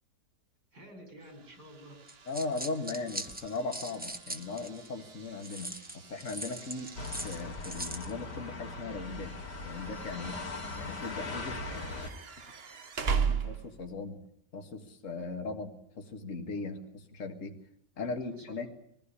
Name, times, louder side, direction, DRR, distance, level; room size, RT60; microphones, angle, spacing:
voice 1, 0.7-2.0 11.8-12.0 18.4-18.7, equal, 80° right, 4 dB, 5.8 m, -51 dB
sound 1, 1.2-14.0, right 6 dB, 40° right, 1.2 m, -40 dB
sound 2, 2.1-4.9 5.4-8.1, right 1 dB, 5° right, 0.8 m, -41 dB
voice 2, 2.3-6.9 7.2-9.4 9.6-10.4 10.8-11.8 13.1-14.2 14.5-17.5 18.0-18.7, left 3 dB, 50° left, 4 dB, 2.1 m, -38 dB
sound 3, 6.9-12.1, left 3 dB, 90° left, 3.1 m, -40 dB
22.5 x 15.5 x 9.9 m, 0.73 s
omnidirectional pair, 1.8 m